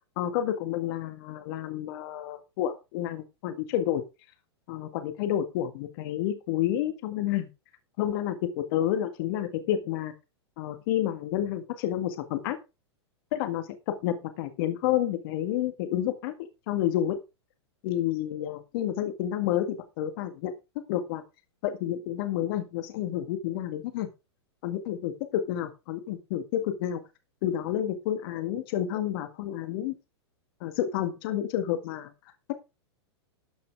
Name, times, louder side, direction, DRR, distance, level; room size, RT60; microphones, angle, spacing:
voice 1, 0.2-4.0 4.7-7.5 8.0-10.1 10.6-12.6 13.3-16.3 16.7-17.2 17.8-20.5 20.9-21.2 21.6-24.1 24.6-27.0 27.4-29.9 30.6-32.1, left 11 dB, 55° left, 9 dB, 1.9 m, -30 dB
13.0 x 5.8 x 4.8 m, 0.27 s
hypercardioid pair, 120°, 14 cm